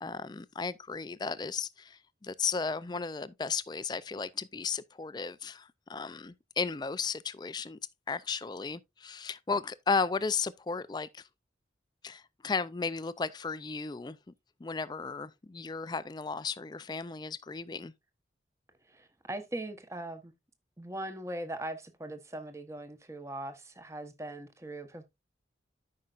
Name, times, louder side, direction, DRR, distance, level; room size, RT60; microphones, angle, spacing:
voice 1, 0.0-7.8 8.1-11.2 12.0-14.2 14.6-17.9, left 5 dB, 25° left, 0.4 m, -34 dB
voice 2, 18.9-20.3 20.8-25.0, right 1 dB, 15° right, 0.9 m, -40 dB
13.5 x 5.5 x 2.4 m
head